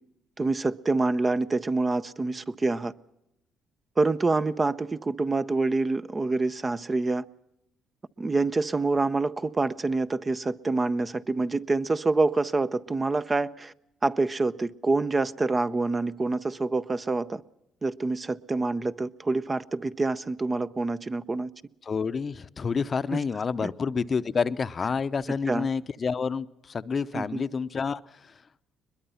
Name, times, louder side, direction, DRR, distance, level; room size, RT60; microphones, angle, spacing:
voice 1, 0.4-2.9 4.0-7.2 8.2-13.7 14.0-17.4 17.8-21.5 23.6-23.7 25.5-25.7 27.1-27.4, right 3 dB, 25° right, 0.6 m, -26 dB
voice 2, 21.8-28.4, left 5 dB, 40° left, 0.7 m, -29 dB
21.5 x 21.5 x 5.6 m
cardioid pair, 90°, 0 cm